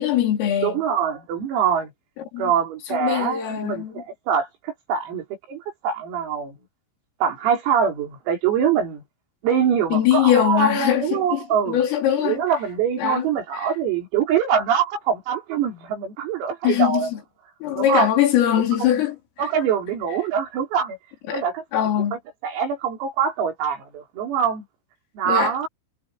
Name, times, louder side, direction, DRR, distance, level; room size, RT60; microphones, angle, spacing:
voice 1, 0.0-0.8 2.2-2.5 2.9-4.0 9.9-12.4 13.0-13.3 13.5-13.7 16.6-17.2 17.6-19.2 21.3-21.4 21.7-22.2 25.3-25.5, left 11 dB, 75° left, 6.2 m, -21 dB
voice 2, 0.6-1.9 2.4-6.6 7.2-9.0 9.4-11.8 12.2-17.1 17.8-18.1 18.9-19.0 19.4-21.0 21.3-21.6 22.4-24.7 25.2-25.7, right 7 dB, 85° right, 7.4 m, -24 dB
omnidirectional pair, 5.9 m